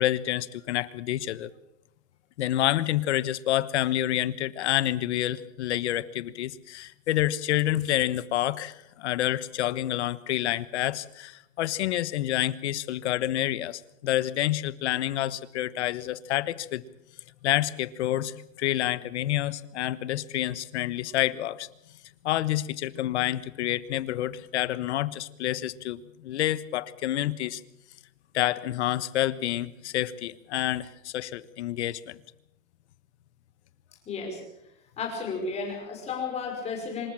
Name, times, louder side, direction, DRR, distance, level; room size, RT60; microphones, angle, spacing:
voice 1, 0.0-1.5 2.4-16.8 17.4-21.7 22.2-27.6 28.3-32.2, left 13 dB, 55° left, 17 dB, 1.2 m, -28 dB
voice 2, 34.1-34.4 35.0-37.1, left 4 dB, 15° left, 1 dB, 5.4 m, -33 dB
26.0 x 14.0 x 8.8 m, 0.81 s
supercardioid pair, 175°, 40 cm